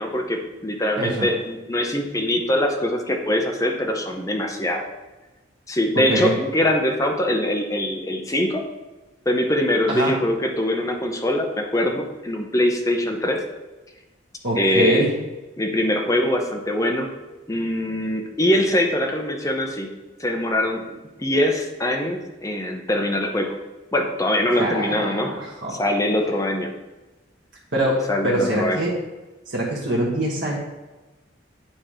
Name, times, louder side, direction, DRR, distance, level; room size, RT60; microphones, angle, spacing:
voice 1, 0.0-4.8 5.7-8.6 9.3-13.4 14.6-15.0 15.6-17.1 17.5-19.9 20.2-20.9 21.2-23.5 23.9-25.3 25.7-26.7 28.1-28.8, left 1 dB, 15° left, 2 dB, 0.7 m, -23 dB
voice 2, 1.0-1.3 5.9-6.3 9.9-10.2 14.4-15.2 24.5-25.8 27.7-29.0 29.5-30.6, right 1 dB, 70° right, -5 dB, 1.2 m, -24 dB
8.9 x 3.0 x 4.9 m, 1.1 s
head